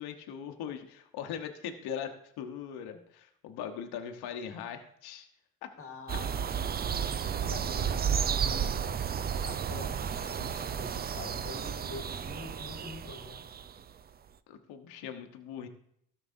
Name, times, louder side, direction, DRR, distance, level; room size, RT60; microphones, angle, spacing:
voice 1, 0.0-2.1 2.4-5.3 10.5-10.7 14.5-15.7, left 8 dB, 80° left, 5 dB, 1.0 m, -40 dB
voice 2, 5.8-6.8 7.4-8.7 9.4-13.5, left 3 dB, 35° left, 4 dB, 1.8 m, -46 dB
sound 1, 6.1-13.8, right 7 dB, 25° right, 0.4 m, -32 dB
13.0 x 6.6 x 2.6 m, 0.70 s
supercardioid pair, 75°, 38 cm